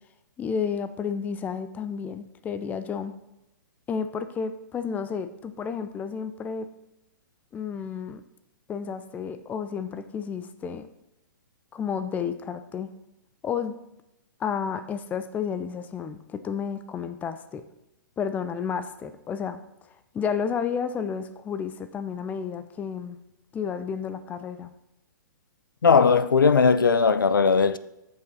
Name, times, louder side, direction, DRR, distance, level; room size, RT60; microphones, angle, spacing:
voice 1, 0.4-3.1 3.9-6.7 7.5-8.2 8.7-10.9 11.7-12.9 13.4-13.8 14.4-17.6 18.2-19.6 20.1-23.2 23.5-24.7, left 6 dB, 15° left, 0.5 m, -31 dB
voice 2, 25.8-27.8, left 5 dB, 80° left, 0.5 m, -18 dB
14.5 x 5.4 x 4.1 m
figure-of-eight pair, 120°, 11 cm